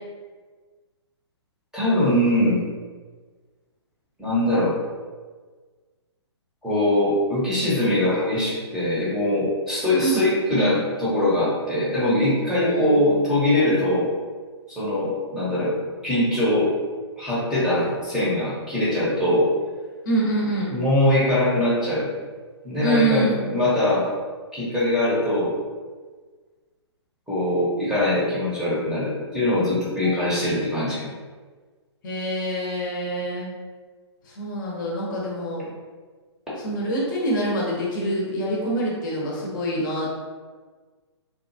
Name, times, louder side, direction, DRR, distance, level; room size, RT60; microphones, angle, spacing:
voice 1, 1.7-2.6 4.2-4.7 6.6-14.1 14.7-15.7 16.0-16.7 17.2-19.5 20.7-22.1 22.6-24.1 24.5-25.5 27.3-31.1, left 1 dB, 5° right, -10 dB, 0.8 m, -22 dB
voice 2, 9.9-10.2 12.6-13.3 20.0-20.7 22.8-23.6 30.0-30.2 32.0-33.5 34.4-35.7 36.6-40.1, right 1 dB, 45° left, -4 dB, 0.8 m, -26 dB
2.8 x 2.3 x 2.6 m, 1.4 s
figure-of-eight pair, 130°, 15 cm